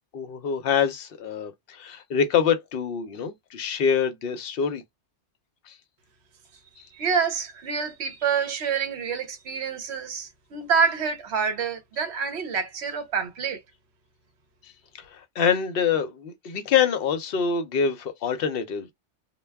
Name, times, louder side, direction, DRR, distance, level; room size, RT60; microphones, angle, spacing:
voice 1, 0.1-4.8 5.7-5.8 15.0-18.9, left 7 dB, 60° left, 0.7 m, -25 dB
voice 2, 6.9-13.6, right 6 dB, 65° right, 0.9 m, -27 dB
2.2 x 2.2 x 3.3 m
omnidirectional pair, 1.2 m